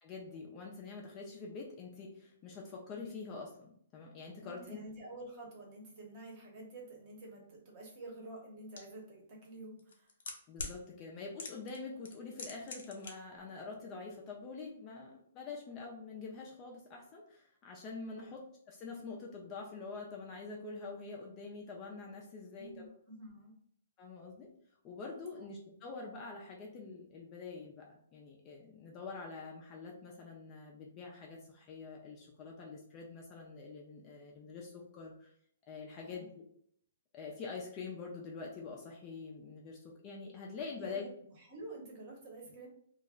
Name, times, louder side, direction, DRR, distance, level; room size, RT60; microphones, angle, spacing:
voice 1, 0.0-4.8 10.5-22.9 24.0-24.5 24.8-35.3 35.6-36.4 37.1-41.1, left 4 dB, 20° left, -1 dB, 0.4 m, -46 dB
voice 2, 4.4-10.1 18.1-18.4 22.6-23.5 25.4-25.5 36.1-36.3 40.8-42.7, right 2 dB, 30° right, -1 dB, 0.8 m, -49 dB
sound 1, 8.8-8.9 9.8-10.8 11.4-11.8 12.0-13.1 13.4-13.5, left 4 dB, 70° left, 0.6 m, -42 dB
2.3 x 2.1 x 3.6 m, 0.65 s
hypercardioid pair, 165°, 0 cm